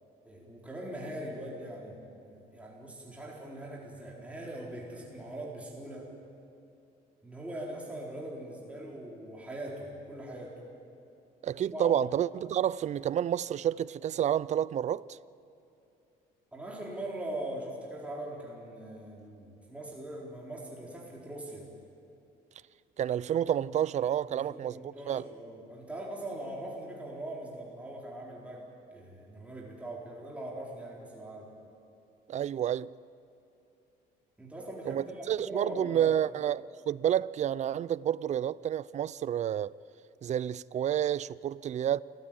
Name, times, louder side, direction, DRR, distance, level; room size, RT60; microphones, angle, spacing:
voice 1, 0.2-6.1 7.2-10.6 11.7-12.0 16.5-21.7 24.3-28.6 28.9-31.5 34.4-36.2, right 1 dB, 10° right, 4.1 m, -41 dB
voice 2, 11.4-15.2 23.0-25.2 32.3-32.9 34.9-39.8 40.2-42.0, right 10 dB, 45° right, 0.5 m, -30 dB
28.5 x 14.5 x 9.1 m
cardioid pair, 110°, 17 cm